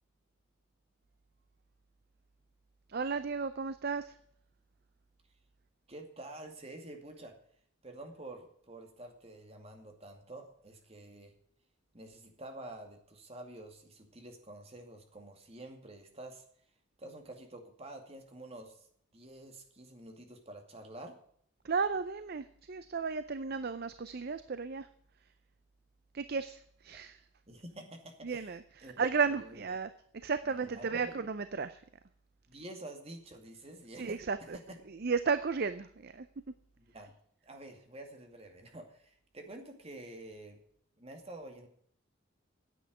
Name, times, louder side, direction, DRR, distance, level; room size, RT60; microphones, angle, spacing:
voice 1, 2.9-4.1 21.6-24.9 26.1-27.2 28.2-29.9 30.2-31.8 34.0-34.6 35.0-36.3, right 5 dB, 50° right, 12 dB, 0.6 m, -34 dB
voice 2, 5.9-7.3 7.8-11.3 11.9-16.4 17.0-18.9 19.1-21.2 27.5-28.5 28.8-28.9 29.3-29.6 30.4-31.1 32.5-34.8 36.8-37.1 37.4-40.6 41.0-41.7, right 1 dB, 30° right, 4 dB, 2.4 m, -49 dB
10.0 x 8.2 x 9.4 m, 0.65 s
head